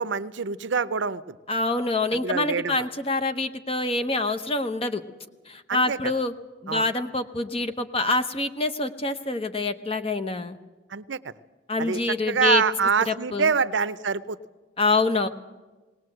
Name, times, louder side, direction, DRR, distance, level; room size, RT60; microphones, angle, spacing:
voice 1, 0.0-1.4 2.1-2.8 5.7-6.0 6.7-6.8 10.9-11.3 11.8-14.4, right 5 dB, 75° right, 15 dB, 0.6 m, -26 dB
voice 2, 1.5-5.0 5.5-6.3 6.6-10.6 11.7-12.6 13.1-13.5 14.8-15.3, left 3 dB, 30° left, 9 dB, 0.8 m, -26 dB
19.0 x 19.0 x 7.7 m, 1.2 s
head